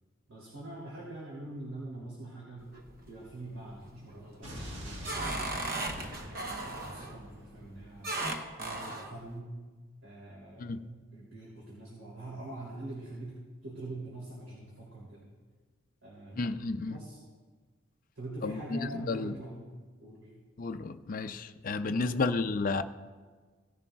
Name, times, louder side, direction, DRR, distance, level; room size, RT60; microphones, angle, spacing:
voice 1, 0.3-2.7 3.1-8.1 8.6-9.5 10.0-15.3 16.0-16.5 16.9-17.2 18.1-19.7 20.0-20.3 21.8-22.2, right 2 dB, 90° right, -6 dB, 2.9 m, -44 dB
sound 1, 2.6-3.3 3.7-4.1 4.6-7.2 8.0-9.1, right 2 dB, 45° right, 1.0 m, -36 dB
Explosion, 4.4-8.5, equal, 65° right, 1.5 m, -45 dB
voice 2, 16.4-17.0 18.4-19.4 20.6-22.8, left 3 dB, 40° left, 8 dB, 0.4 m, -32 dB
17.5 x 11.0 x 2.3 m, 1.4 s
head